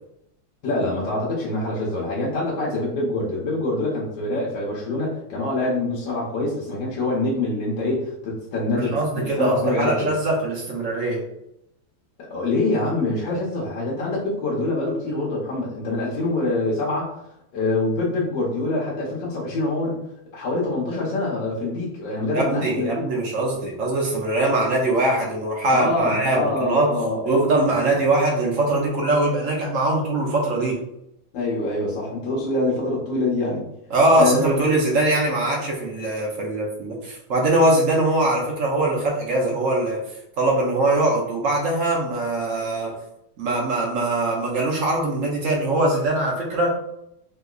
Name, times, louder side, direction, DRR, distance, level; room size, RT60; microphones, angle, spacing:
voice 1, 0.6-10.1 12.2-17.1 17.5-20.0 20.3-23.1 25.7-27.2 27.6-27.7 31.3-33.6 34.1-34.7, left 2 dB, 65° left, -4 dB, 1.4 m, -25 dB
voice 2, 8.7-11.2 22.3-26.9 27.3-30.8 33.9-40.0 40.4-42.9 43.4-46.7, right 2 dB, 80° right, -2 dB, 0.7 m, -22 dB
3.7 x 2.7 x 2.4 m, 0.81 s
omnidirectional pair, 2.3 m